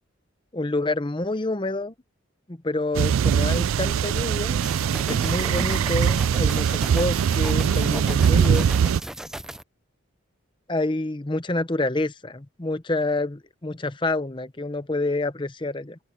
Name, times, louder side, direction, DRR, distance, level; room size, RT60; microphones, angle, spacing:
voice 1, 0.5-1.9 2.5-4.6 5.1-8.7 10.7-16.0, left 2 dB, 25° left, 0.8 m, -28 dB
sound 1, 2.9-9.0, right 7 dB, 90° right, 0.3 m, -22 dB
sound 2, 4.6-9.6, right 1 dB, 5° right, 0.4 m, -36 dB
open air
head